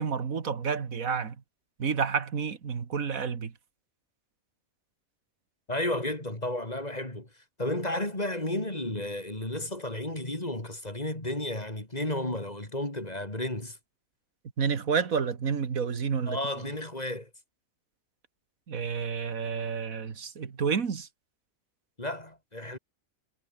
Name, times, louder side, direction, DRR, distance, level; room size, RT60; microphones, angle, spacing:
voice 1, 0.0-1.3 1.8-3.5 14.6-16.4 18.7-21.1, right 6 dB, 90° right, 2.1 m, -29 dB
voice 2, 5.7-7.3 7.6-13.8 16.3-17.3 22.0-22.8, left 1 dB, 30° left, 4.5 m, -32 dB
omnidirectional pair, 1.4 m